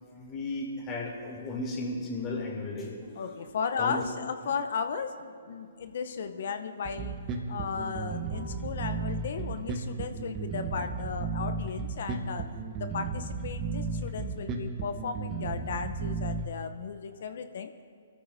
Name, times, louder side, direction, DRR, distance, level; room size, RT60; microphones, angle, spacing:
voice 1, 0.1-3.4 3.8-4.0, left 2 dB, 25° left, -1 dB, 3.1 m, -35 dB
sound 1, 1.6-12.8 13.7-13.8 14.2-17.2, right 2 dB, 80° right, 4.0 m, -56 dB
voice 2, 3.2-7.2 7.5-12.5 12.8-17.7, left 6 dB, 60° left, 9 dB, 0.7 m, -35 dB
Bass guitar, 6.8-16.4, right 4 dB, 25° right, 1.3 m, -34 dB
24.0 x 13.5 x 2.7 m, 2.2 s
hypercardioid pair, 130°, 0 cm